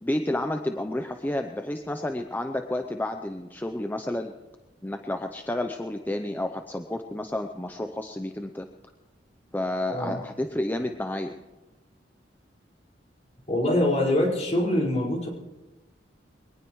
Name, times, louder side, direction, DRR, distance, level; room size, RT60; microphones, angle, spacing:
voice 1, 0.0-4.3 4.8-8.7 9.5-11.3, left 1 dB, 10° left, 6 dB, 0.6 m, -30 dB
voice 2, 13.5-15.3, left 1 dB, 40° left, -3 dB, 4.9 m, -24 dB
22.5 x 19.0 x 3.1 m, 1.2 s
head